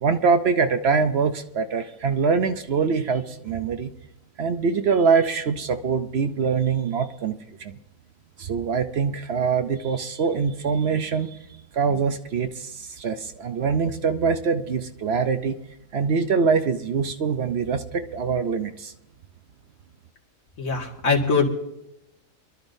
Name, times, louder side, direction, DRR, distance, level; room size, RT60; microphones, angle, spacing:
voice 1, 0.0-3.9 4.4-7.7 8.4-11.4 11.7-15.6 15.9-18.9, right 5 dB, 55° right, 8 dB, 0.9 m, -24 dB
voice 2, 20.6-21.4, left 4 dB, 75° left, -1 dB, 2.5 m, -22 dB
24.0 x 12.5 x 2.7 m, 0.88 s
omnidirectional pair, 1.4 m